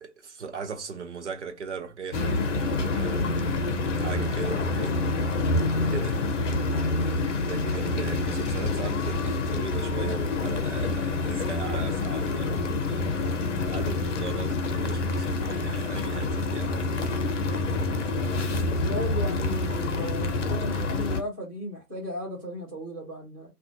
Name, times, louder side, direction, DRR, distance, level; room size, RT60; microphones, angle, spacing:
voice 1, 0.0-3.4 3.9-5.4 5.9-6.3 7.4-17.0, right 5 dB, 50° right, 0.7 m, -39 dB
sound 1, 2.1-21.2, left 3 dB, 50° left, 0.7 m, -27 dB
voice 2, 18.8-23.5, left 1 dB, 5° right, 0.5 m, -35 dB
3.5 x 2.4 x 2.6 m
figure-of-eight pair, 130°, 47 cm